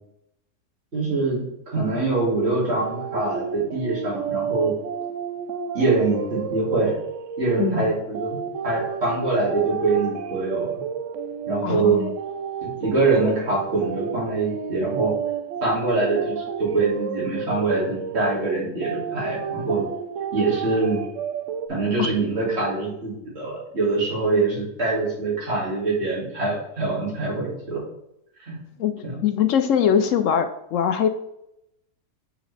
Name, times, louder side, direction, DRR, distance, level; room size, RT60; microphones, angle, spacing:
voice 1, 0.9-4.8 5.7-6.9 7.4-8.4 8.6-10.7 11.5-12.0 12.6-15.1 15.6-19.8 20.3-21.0 21.7-27.8 28.5-28.6 29.0-29.2, right 3 dB, 40° right, -6 dB, 2.6 m, -24 dB
sound 1, 2.7-21.7, right 7 dB, 65° right, 0.8 m, -31 dB
voice 2, 11.6-12.1 22.0-22.1 28.8-29.0 29.2-31.1, left 8 dB, 70° left, 8 dB, 0.7 m, -21 dB
7.6 x 4.8 x 3.3 m, 0.83 s
omnidirectional pair, 1.8 m